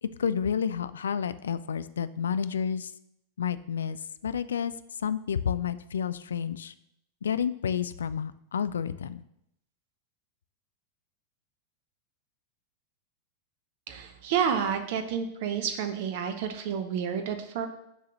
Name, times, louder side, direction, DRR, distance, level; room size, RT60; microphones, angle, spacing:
voice 1, 0.0-2.9 3.4-4.7 5.0-6.7 7.2-9.2, left 7 dB, 65° left, 14 dB, 0.4 m, -30 dB
voice 2, 13.9-17.7, right 7 dB, 50° right, 7 dB, 0.7 m, -30 dB
6.7 x 4.8 x 6.1 m, 0.79 s
figure-of-eight pair, 90°, 0 cm